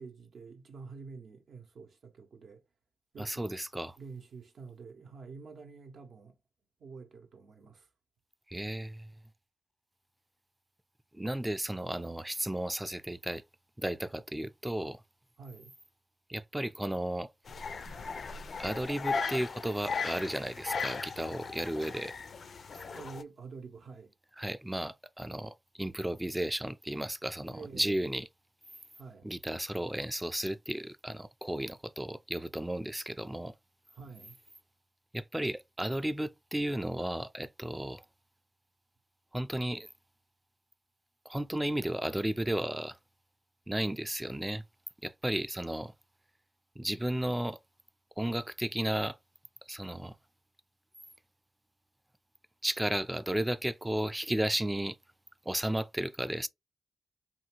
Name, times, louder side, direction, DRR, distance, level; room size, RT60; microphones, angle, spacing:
voice 1, 0.0-2.6 3.1-3.6 4.0-6.4 6.8-7.9 15.4-15.8 22.9-24.1 27.5-28.0 29.0-29.3 33.9-34.4, right 4 dB, 70° right, 0.7 m, -48 dB
voice 2, 3.2-4.0 8.5-9.1 11.1-13.4 13.8-15.0 16.3-17.3 18.6-22.1 24.4-28.3 29.2-33.5 35.1-38.0 39.3-39.9 41.3-43.0 43.7-44.6 45.0-45.9 46.8-47.6 48.2-49.2 49.7-50.1 52.6-55.0 55.5-56.5, right 1 dB, 10° right, 0.4 m, -34 dB
sound 1, 17.5-23.2, left 5 dB, 60° left, 0.4 m, -37 dB
2.7 x 2.3 x 2.9 m
supercardioid pair, 45°, 0 cm